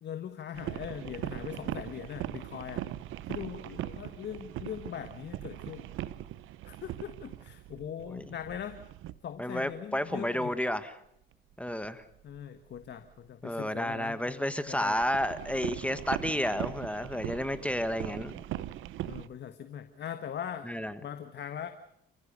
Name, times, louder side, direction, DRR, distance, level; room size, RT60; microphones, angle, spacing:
voice 1, 0.0-2.9 3.3-5.9 6.6-8.8 9.2-10.5 12.2-14.2 14.7-15.0 19.0-21.7, left 9 dB, 60° left, 1.5 m, -41 dB
sound 1, 0.5-9.2 9.9-10.0 11.6-12.4 12.7-13.1 13.9-14.0 14.2-14.3 14.7-19.3, right 13 dB, 90° right, 0.8 m, -40 dB
voice 2, 9.4-10.9 11.6-12.0 13.4-18.4 20.6-20.9, left 1 dB, 5° left, 1.4 m, -31 dB
29.0 x 15.5 x 6.8 m
cardioid pair, 90°, 20 cm